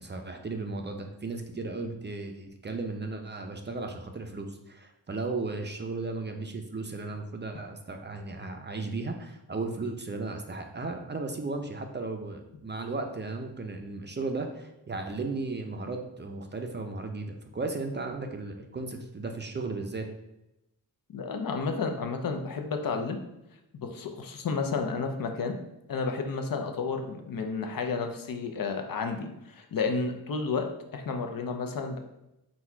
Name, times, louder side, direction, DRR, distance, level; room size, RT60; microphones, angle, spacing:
voice 1, 0.0-20.1, right 3 dB, 30° right, 4 dB, 0.4 m, -35 dB
voice 2, 21.1-23.2 23.7-25.5 25.9-30.7 30.9-32.0, left 4 dB, 65° left, 5 dB, 0.6 m, -31 dB
4.0 x 2.3 x 4.4 m, 0.89 s
wide cardioid pair, 105°, 37 cm